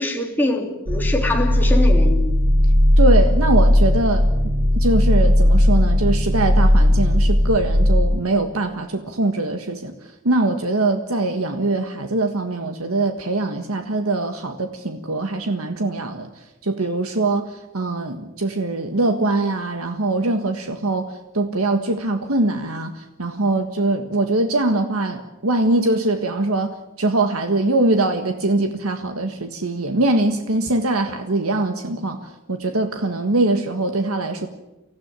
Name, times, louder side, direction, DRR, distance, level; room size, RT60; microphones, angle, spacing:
voice 1, 0.0-2.3, left 1 dB, 10° left, 1 dB, 3.0 m, -24 dB
sound 1, 0.9-8.0, left 1 dB, 45° right, 7.6 m, -16 dB
voice 2, 3.0-4.3 4.7-9.9 10.2-16.3 16.6-34.5, right 2 dB, 90° right, 6 dB, 1.7 m, -22 dB
25.0 x 16.0 x 9.0 m, 0.95 s
head